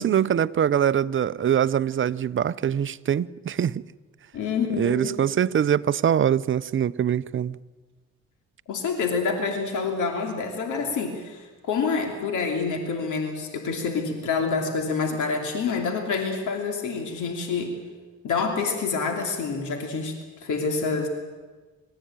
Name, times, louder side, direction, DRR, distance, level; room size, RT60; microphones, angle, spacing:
voice 1, 0.0-3.8 4.8-7.6, right 9 dB, 40° right, 0.7 m, -23 dB
voice 2, 4.3-5.1 8.7-17.8 18.2-20.1 20.4-21.1, left 5 dB, 80° left, 3.1 m, -27 dB
25.5 x 14.5 x 9.0 m
cardioid pair, 90°, 30 cm